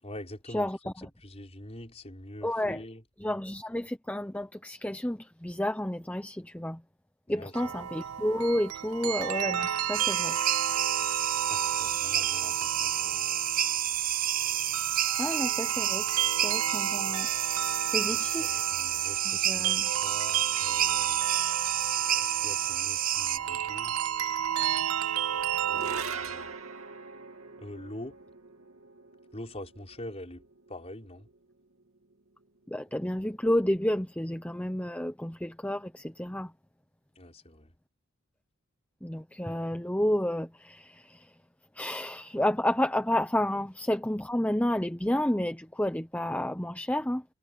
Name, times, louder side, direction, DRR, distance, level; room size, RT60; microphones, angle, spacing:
voice 1, 0.0-0.9 1.2-3.0 7.3-7.5 11.5-13.3 18.1-21.3 22.2-24.0 25.7-26.6 27.6-28.2 29.3-31.3 37.2-37.7, left 1 dB, 30° left, 5.8 m, -45 dB
voice 2, 0.5-1.1 2.4-2.8 3.2-6.8 7.3-10.4 15.2-16.0 16.4-17.3 17.9-18.6 19.2-19.9 32.7-36.5 39.0-41.3 41.7-47.2, left 1 dB, 5° left, 0.8 m, -30 dB
sound 1, 7.5-26.0, right 9 dB, 85° right, 0.6 m, -33 dB
sound 2, 9.9-23.4, right 12 dB, 40° right, 0.7 m, -29 dB
sound 3, 25.7-32.1, right 5 dB, 70° right, 2.8 m, -43 dB
head